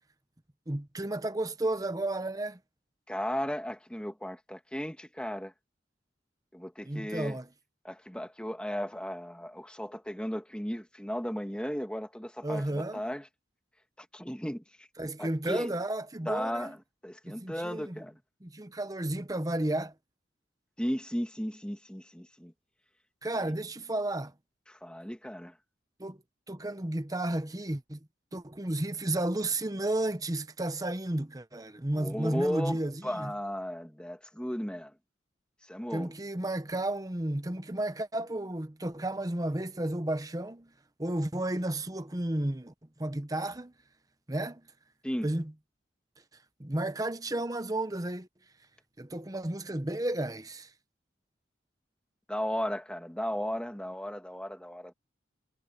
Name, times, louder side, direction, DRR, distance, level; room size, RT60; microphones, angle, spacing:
voice 1, 0.7-2.6 6.8-7.5 12.4-13.0 15.0-16.7 17.2-18.0 18.4-19.9 23.2-24.3 26.0-26.2 26.5-28.0 28.3-33.3 35.9-40.7 41.0-42.7 43.0-43.7 44.3-44.7 45.2-45.5 46.6-48.3 49.0-50.7, right 1 dB, 20° right, 1.0 m, -32 dB
voice 2, 3.1-5.5 6.5-7.4 7.8-13.3 14.0-14.9 15.2-15.7 16.3-16.8 17.0-18.1 20.8-22.5 23.4-23.5 24.7-25.6 31.9-34.9 35.6-36.1 45.0-45.3 52.3-54.9, equal, 5° left, 2.0 m, -35 dB
head